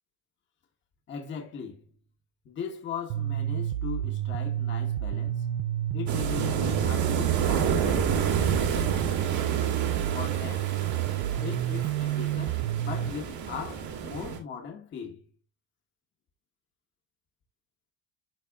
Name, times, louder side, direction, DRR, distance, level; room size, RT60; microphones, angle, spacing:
voice 1, 1.1-1.8 2.4-5.5 5.9-8.9 10.1-10.8 11.4-15.3, left 6 dB, 30° left, 1.5 m, -39 dB
sound 1, 3.1-13.1, right 13 dB, 65° right, 0.8 m, -30 dB
sound 2, 6.1-14.4, right 7 dB, 50° right, 2.1 m, -30 dB
12.0 x 4.3 x 2.4 m
cardioid pair, 160°, 38 cm